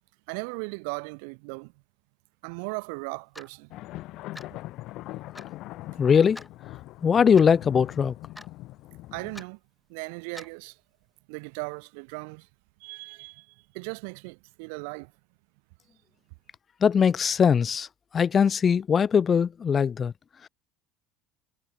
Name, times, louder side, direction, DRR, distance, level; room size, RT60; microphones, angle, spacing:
voice 1, 0.3-1.7 2.4-3.7 9.1-9.6 9.9-10.7 11.3-12.4 12.8-13.4 13.7-15.1, right 36 dB, 70° right, 3.9 m, -37 dB
Clock, 3.4-3.5 4.4-4.6 5.4-5.5 6.4-6.5 7.4-7.5 8.4-8.6 9.4-9.5 10.4-10.6, left 1 dB, 5° left, 3.5 m, -44 dB
sound 1, 3.7-9.4, left 18 dB, 60° left, 2.0 m, -41 dB
voice 2, 6.0-6.4 7.0-8.1 16.8-17.9 18.1-20.1 20.4-20.5, left 7 dB, 35° left, 0.4 m, -21 dB
hypercardioid pair, 75°, 0 cm